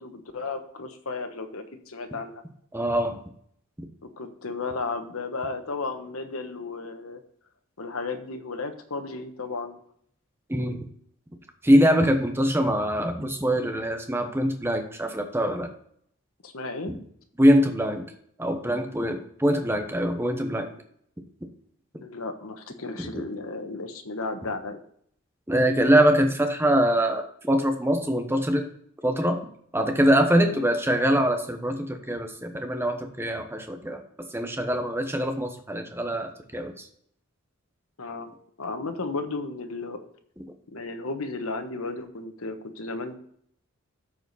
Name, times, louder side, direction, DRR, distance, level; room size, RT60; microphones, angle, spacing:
voice 1, 0.0-2.4 4.2-7.2 7.8-9.8 16.4-16.9 22.0-24.8 30.5-30.7 38.0-38.3 38.6-40.0 40.7-43.1, left 3 dB, 85° left, 7 dB, 1.2 m, -34 dB
voice 2, 2.7-3.2 10.5-10.8 11.6-15.7 16.9-17.0 17.4-18.1 18.4-20.7 23.0-23.1 25.5-28.7 29.0-29.4 29.7-34.0 34.3-36.9, equal, 10° right, 5 dB, 1.1 m, -23 dB
13.0 x 5.0 x 4.1 m, 0.65 s
head